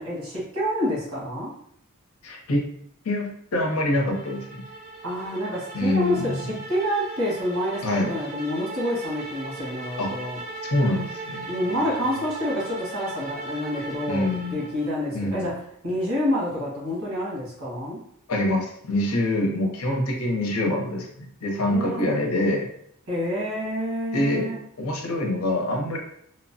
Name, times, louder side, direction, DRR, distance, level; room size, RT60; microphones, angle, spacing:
voice 1, 0.0-1.5 5.0-10.4 11.5-15.6 15.8-18.0 21.7-22.3 23.1-24.6, equal, 85° right, -5 dB, 1.4 m, -28 dB
voice 2, 2.2-2.6 3.0-4.6 5.7-6.5 7.8-8.2 10.0-10.1 10.7-11.8 14.1-14.6 15.1-15.6 18.3-22.7 24.1-24.5 24.8-26.0, left 1 dB, 75° left, 1 dB, 0.7 m, -25 dB
sound 1, 3.6-14.9, right 2 dB, 30° right, 0.6 m, -38 dB
3.0 x 2.1 x 2.6 m, 0.69 s
head